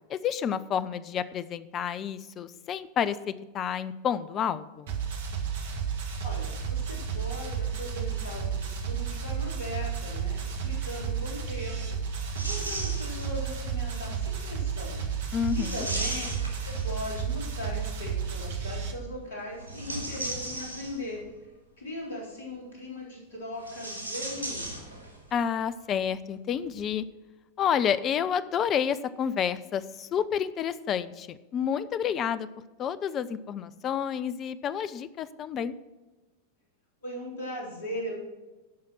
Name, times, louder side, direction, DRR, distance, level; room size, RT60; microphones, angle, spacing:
voice 1, 0.1-4.9 15.3-15.9 25.3-27.0 27.6-32.5 32.8-35.7, left 8 dB, 30° left, 15 dB, 0.5 m, -29 dB
sound 1, 4.9-18.9, right 7 dB, 60° right, 1.5 m, -32 dB
voice 2, 6.2-15.1 15.5-16.3 16.6-21.2 21.8-24.8 37.0-38.1, left 1 dB, 60° left, -3 dB, 3.8 m, -39 dB
sound 2, 12.4-13.5 15.4-17.3 19.5-21.3 23.5-25.3 25.6-25.7 26.6-26.8, right 1 dB, 85° left, 2.8 m, -37 dB
12.0 x 5.8 x 6.1 m, 1.1 s
figure-of-eight pair, 90°, 0 cm